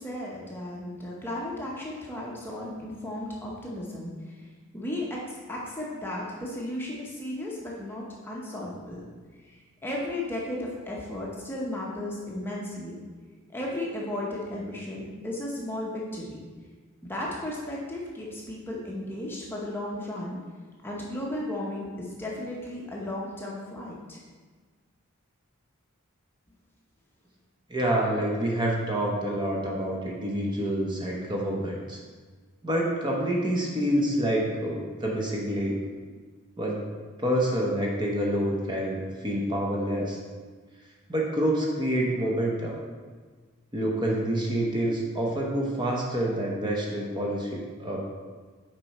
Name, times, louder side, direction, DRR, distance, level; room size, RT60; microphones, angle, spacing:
voice 1, 0.0-5.2 5.5-13.0 13.5-16.4 17.0-20.4 20.8-24.2, left 1 dB, 10° left, -4 dB, 0.8 m, -35 dB
voice 2, 27.7-32.0 32.6-35.8 36.6-36.8 37.2-40.2 41.1-42.8 43.7-48.1, right 1 dB, 20° right, -2 dB, 0.9 m, -27 dB
6.3 x 4.7 x 4.2 m, 1.4 s
head